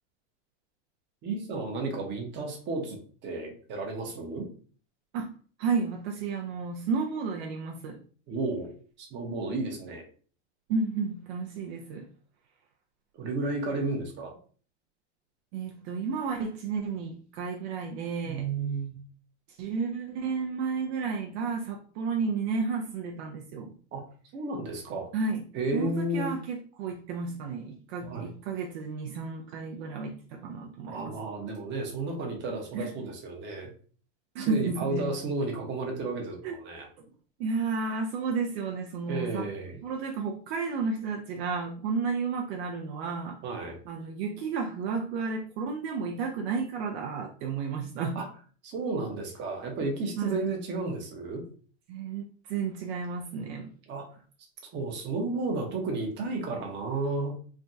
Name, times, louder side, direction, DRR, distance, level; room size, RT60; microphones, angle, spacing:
voice 1, 1.2-3.0 3.2-4.5 8.3-8.7 9.0-10.0 13.2-14.4 18.2-19.0 23.9-24.0 24.3-25.1 25.5-26.3 28.0-28.3 30.9-33.7 34.4-36.9 39.1-39.8 43.4-43.8 48.1-48.2 48.6-51.4 53.9-54.1 54.7-57.4, right 3 dB, 30° right, 0.8 m, -32 dB
voice 2, 5.1-8.0 10.7-12.1 15.5-18.5 19.5-23.7 25.1-25.4 25.7-31.2 32.7-32.9 34.3-35.1 36.4-36.6 37.0-37.1 37.4-39.5 39.8-43.4 43.9-48.2 50.2-50.5 51.9-53.7, right 5 dB, 60° right, 0.5 m, -32 dB
3.3 x 2.2 x 2.6 m
supercardioid pair, 145°, 37 cm